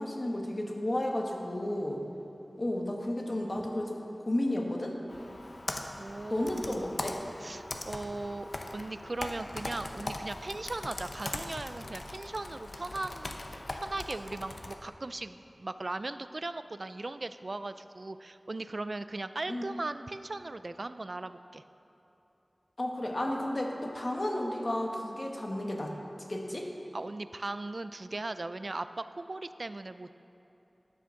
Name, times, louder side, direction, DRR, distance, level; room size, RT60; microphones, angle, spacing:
voice 1, 0.0-2.0 2.6-5.0 6.3-7.2 19.5-19.6 22.8-25.9 26.3-26.7, left 1 dB, 50° left, 1 dB, 1.3 m, -32 dB
Computer keyboard, 5.1-14.8, left 2 dB, 70° left, 0.7 m, -40 dB
voice 2, 6.0-6.7 7.4-21.6 26.9-30.1, right 2 dB, 60° right, 12 dB, 0.3 m, -38 dB
12.0 x 6.2 x 5.8 m, 3.0 s
wide cardioid pair, 55°, 0 cm